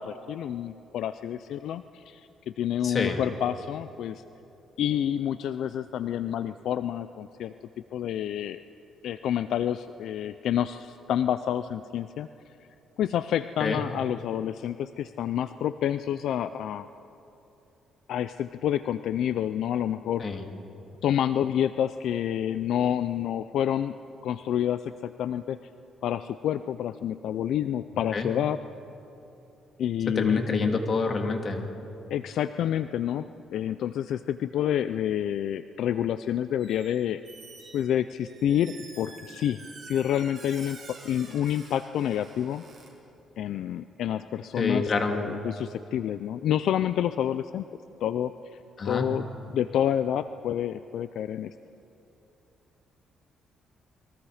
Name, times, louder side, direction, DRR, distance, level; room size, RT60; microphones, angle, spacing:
voice 1, 0.0-4.2 4.8-7.5 7.9-8.6 9.0-12.3 13.0-16.9 18.1-20.2 21.0-24.0 24.2-25.6 26.0-28.6 29.8-30.8 32.1-33.3 33.5-37.2 37.7-42.6 43.4-47.6 48.0-48.6 48.8-49.2 49.5-51.5, left 10 dB, 75° left, 12 dB, 0.5 m, -28 dB
voice 2, 2.8-3.2 13.6-13.8 20.2-20.5 28.1-28.3 30.1-31.7 44.5-45.2 48.8-49.1, left 3 dB, 45° left, 4 dB, 2.6 m, -27 dB
Squeak, 36.6-36.9 37.2-42.9, right 4 dB, 40° right, 7.0 m, -48 dB
29.5 x 22.5 x 5.0 m, 2.9 s
cardioid pair, 90°, 0 cm